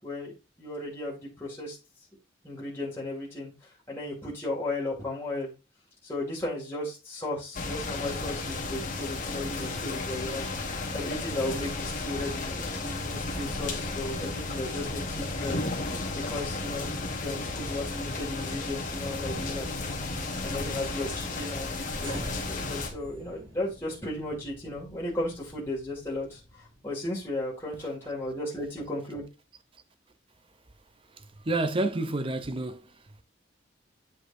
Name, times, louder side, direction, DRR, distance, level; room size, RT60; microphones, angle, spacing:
voice 1, 0.0-1.8 2.4-3.5 3.9-5.5 6.0-10.4 10.9-15.6 16.1-19.9 20.4-29.2, left 1 dB, 15° left, 2.3 m, -35 dB
sound 1, 7.5-22.9, left 2 dB, 45° left, 1.5 m, -33 dB
sound 2, 22.0-28.3, equal, 70° right, 3.8 m, -47 dB
voice 2, 31.4-32.8, right 2 dB, 30° right, 0.6 m, -28 dB
8.2 x 5.2 x 2.6 m
head